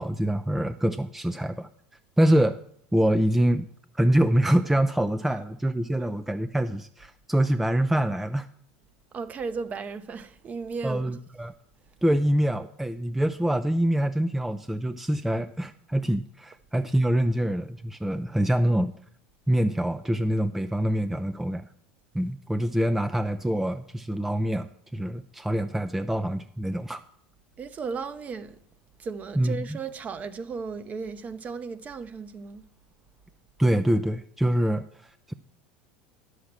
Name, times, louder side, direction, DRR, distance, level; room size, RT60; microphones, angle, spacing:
voice 1, 0.0-1.7 2.2-2.6 2.9-3.7 3.9-8.5 10.8-11.5 12.0-18.9 19.5-21.7 22.1-27.0 29.4-29.8 33.6-35.3, right 1 dB, 5° right, 0.4 m, -25 dB
voice 2, 9.1-11.2 27.6-28.6 29.0-32.6, right 5 dB, 35° right, 0.8 m, -35 dB
10.0 x 6.4 x 7.4 m
hypercardioid pair, 90°, 5 cm